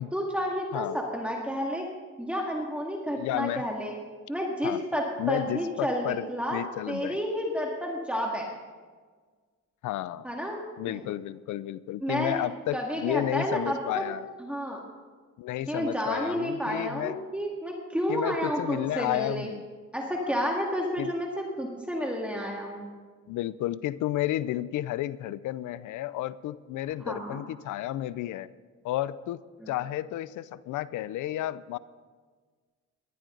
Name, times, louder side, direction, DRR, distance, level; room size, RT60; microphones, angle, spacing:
voice 1, 0.1-1.9 2.2-3.9 4.3-6.6 6.9-8.5 10.2-10.6 10.9-11.0 12.0-12.4 12.7-14.0 14.4-14.8 15.7-19.5 19.9-22.9 27.1-27.4 29.6-29.7, equal, 5° right, -1 dB, 2.0 m, -30 dB
voice 2, 3.1-3.6 4.6-4.8 5.2-6.3 6.5-7.2 9.8-10.2 10.8-14.3 15.4-17.2 18.1-19.7 20.1-20.4 21.0-21.1 23.3-28.5 28.8-29.4 29.7-31.8, left 14 dB, 80° left, 18 dB, 0.5 m, -32 dB
19.0 x 12.0 x 3.8 m, 1.5 s
cardioid pair, 90°, 30 cm